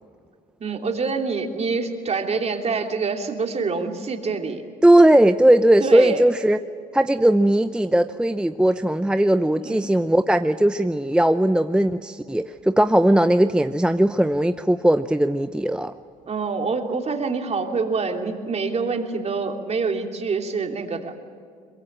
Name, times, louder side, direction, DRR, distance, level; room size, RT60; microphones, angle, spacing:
voice 1, 0.6-4.6 5.8-6.2 9.6-9.9 16.3-21.1, right 4 dB, 35° right, 4 dB, 3.1 m, -26 dB
voice 2, 4.8-6.6 6.9-15.9, right 1 dB, 5° right, 10 dB, 0.6 m, -18 dB
23.0 x 22.0 x 8.8 m, 2.3 s
supercardioid pair, 80°, 18 cm